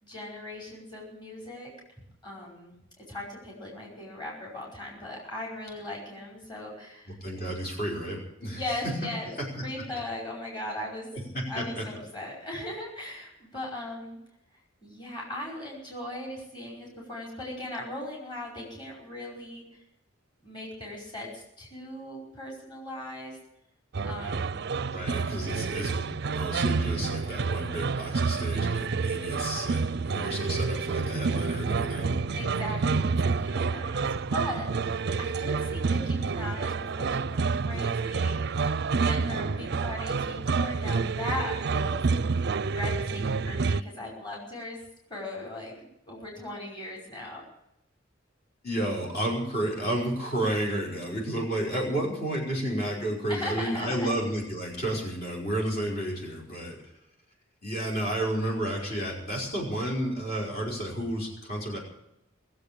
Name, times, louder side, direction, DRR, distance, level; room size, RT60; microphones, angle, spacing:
voice 1, 0.0-1.7 2.0-7.2 8.5-9.3 9.6-11.1 11.5-14.2 14.8-19.6 20.4-23.4 24.0-24.6 32.3-42.3 42.7-44.8 45.1-47.4 53.3-54.1, left 1 dB, 25° left, -3 dB, 5.2 m, -38 dB
voice 2, 7.2-8.9 9.4-9.7 11.1-11.8 24.9-32.2 48.6-56.9 57.6-61.8, right 1 dB, 50° left, -2 dB, 5.4 m, -31 dB
sound 1, 23.9-43.8, right 4 dB, 55° right, 0.5 m, -28 dB
21.0 x 7.9 x 8.7 m, 0.82 s
head